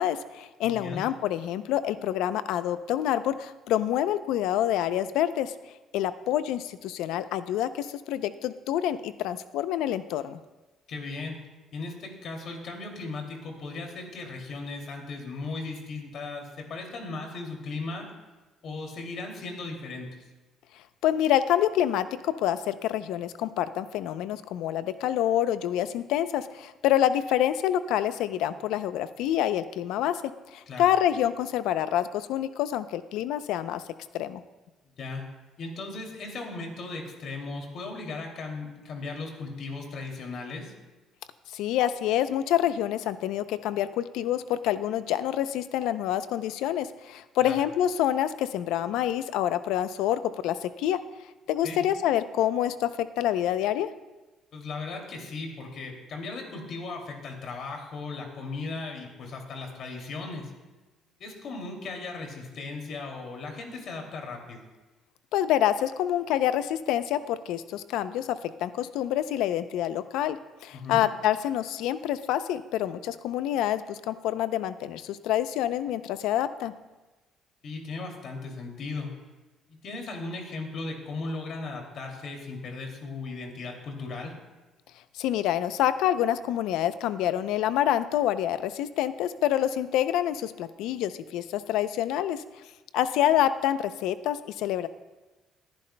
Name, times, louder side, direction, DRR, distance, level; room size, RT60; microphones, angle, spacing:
voice 1, 0.0-5.5 5.9-10.4 21.0-30.2 30.5-33.8 34.1-34.4 41.5-51.0 51.5-53.9 65.3-70.4 70.6-76.7 85.1-92.4 92.9-94.9, left 11 dB, 85° left, 13 dB, 0.5 m, -27 dB
voice 2, 0.6-1.0 10.9-11.4 11.7-18.1 18.6-20.2 30.7-30.9 35.0-35.2 35.6-40.7 47.4-47.6 51.6-51.8 54.5-60.5 61.2-64.6 70.7-71.0 77.6-79.1 79.7-84.3, left 3 dB, 55° left, 2 dB, 2.5 m, -37 dB
21.5 x 10.5 x 2.2 m, 1.2 s
cardioid pair, 110°, 0 cm